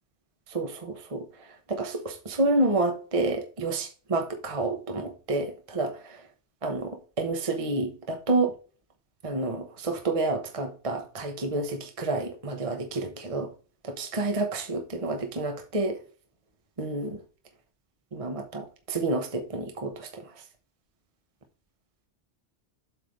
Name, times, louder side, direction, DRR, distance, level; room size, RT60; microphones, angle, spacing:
voice 1, 0.5-6.2 6.6-8.5 9.2-13.5 13.8-16.0 16.8-17.2 18.1-20.3, right 2 dB, 30° right, 0.9 m, -29 dB
7.9 x 3.3 x 5.1 m
omnidirectional pair, 1.2 m